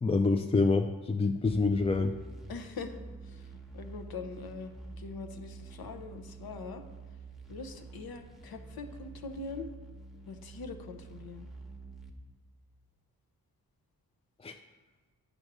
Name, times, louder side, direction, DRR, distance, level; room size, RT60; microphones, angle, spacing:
voice 1, 0.0-2.1 14.4-14.6, left 3 dB, 20° left, 5 dB, 0.3 m, -26 dB
sound 1, 1.4-12.1, right 3 dB, ahead, 0.9 m, -48 dB
voice 2, 2.5-3.0 3.3-4.7 5.0-6.8 7.5-9.7 10.3-11.5, left 4 dB, 85° left, 6 dB, 0.9 m, -43 dB
9.3 x 5.3 x 4.8 m, 1.4 s
wide cardioid pair, 95°, 35 cm